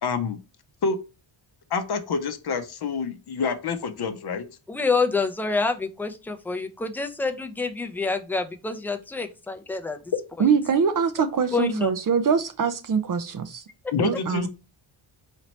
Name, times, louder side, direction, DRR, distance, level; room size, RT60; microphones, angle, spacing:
voice 1, 0.0-0.4 0.8-1.0 1.7-4.4 10.1-10.2 13.9-14.5, left 5 dB, 50° left, 0.7 m, -27 dB
voice 2, 4.7-10.0 11.5-11.9, left 4 dB, 5° left, 0.5 m, -27 dB
voice 3, 10.4-13.6 14.0-14.5, right 6 dB, 45° right, 0.5 m, -23 dB
4.2 x 2.9 x 3.1 m
cardioid pair, 70°, 49 cm